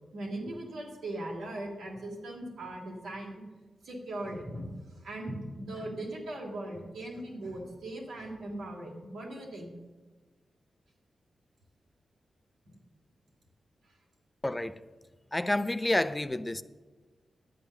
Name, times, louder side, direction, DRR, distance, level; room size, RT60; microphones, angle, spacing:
voice 1, 0.1-3.3 3.8-4.7 5.0-9.7 12.7-12.8, right 1 dB, 90° right, 2.8 m, -39 dB
voice 2, 14.4-14.8 15.3-16.6, left 1 dB, 20° left, 0.6 m, -29 dB
11.0 x 8.3 x 6.7 m
cardioid pair, 45°, 0 cm